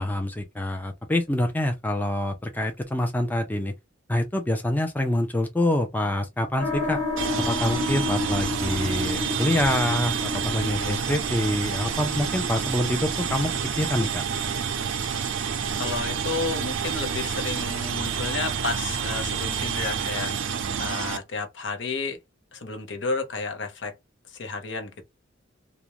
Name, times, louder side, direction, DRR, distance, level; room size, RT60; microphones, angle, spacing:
voice 1, 0.0-3.7 4.1-7.0 7.5-14.3, left 1 dB, 10° left, 0.4 m, -26 dB
sound 1, 6.6-17.7, left 2 dB, 40° left, 1.2 m, -33 dB
sound 2, 7.2-21.2, right 7 dB, 90° right, 0.4 m, -29 dB
voice 2, 15.8-22.2 22.5-23.9 24.3-25.0, left 4 dB, 65° left, 0.7 m, -32 dB
2.5 x 2.1 x 2.9 m
head